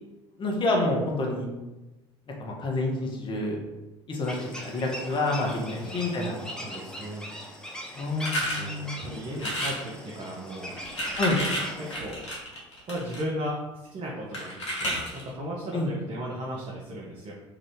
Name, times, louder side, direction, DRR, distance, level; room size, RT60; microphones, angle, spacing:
voice 1, 0.4-1.5 2.4-3.6 4.1-6.3 8.0-8.9 11.2-11.4 15.7-15.9, left 2 dB, 35° left, -1 dB, 0.9 m, -28 dB
sound 1, 4.2-12.0, equal, 5° left, 0.7 m, -40 dB
voice 2, 5.5-6.0 6.6-7.3 8.6-8.7 9.0-10.7 11.8-12.2 12.9-17.3, equal, 40° right, -3 dB, 0.7 m, -36 dB
sound 2, 8.2-8.6 9.3-9.8 10.7-13.2 14.3-15.3, equal, 90° left, 0.9 m, -31 dB
2.8 x 2.5 x 3.4 m, 1.1 s
hypercardioid pair, 65°, 15 cm